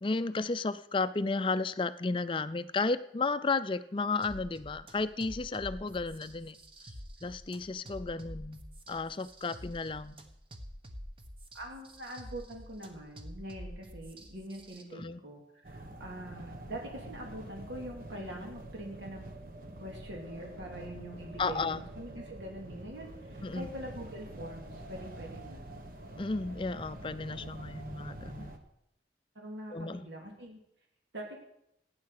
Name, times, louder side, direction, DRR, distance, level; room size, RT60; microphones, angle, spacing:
voice 1, 0.0-6.6 7.2-8.6 8.9-10.2 14.9-15.2 21.4-21.8 23.4-23.7 26.2-28.5 29.7-30.1, left 3 dB, 30° left, 13 dB, 0.4 m, -33 dB
sound 1, 4.2-14.8, equal, 30° right, 1.3 m, -48 dB
voice 2, 11.5-19.2 19.8-25.6 29.3-30.6 31.1-31.4, right 1 dB, 85° right, 0 dB, 2.5 m, -44 dB
sound 2, 15.6-28.6, right 1 dB, 50° right, 1.4 m, -46 dB
15.5 x 9.6 x 6.6 m, 0.79 s
head